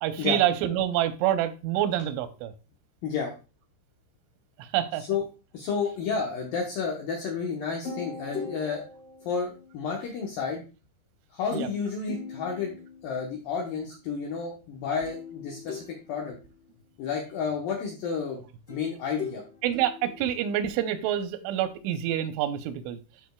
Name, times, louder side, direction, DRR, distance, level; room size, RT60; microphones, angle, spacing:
voice 1, 0.0-2.5 4.6-5.0 11.5-11.7 19.6-23.0, right 11 dB, 90° right, 10 dB, 3.2 m, -27 dB
voice 2, 3.0-3.3 5.1-5.2 5.5-8.8 9.3-10.6 11.3-12.7 13.0-16.4 17.0-18.4 18.7-19.4, left 5 dB, 75° left, 0 dB, 2.0 m, -31 dB
sound 1, 7.8-10.1 11.5-11.8 12.1-13.4 15.1-16.8 18.7-21.0, left 5 dB, 30° left, 1.6 m, -41 dB
12.5 x 5.1 x 2.2 m, 0.31 s
omnidirectional pair, 5.3 m